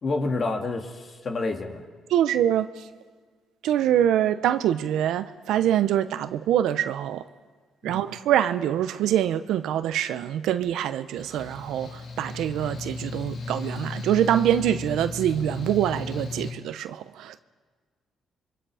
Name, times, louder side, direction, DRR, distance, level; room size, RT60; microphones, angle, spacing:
voice 1, 0.0-1.8 7.8-8.0, left 3 dB, 45° left, 2.3 m, -29 dB
voice 2, 2.1-2.9 3.6-7.2 7.8-17.4, right 11 dB, 85° right, 0.8 m, -24 dB
Mechanical fan, 11.2-16.5, left 4 dB, 65° left, 2.3 m, -36 dB
26.5 x 23.0 x 5.0 m
cardioid pair, 90°, 0 cm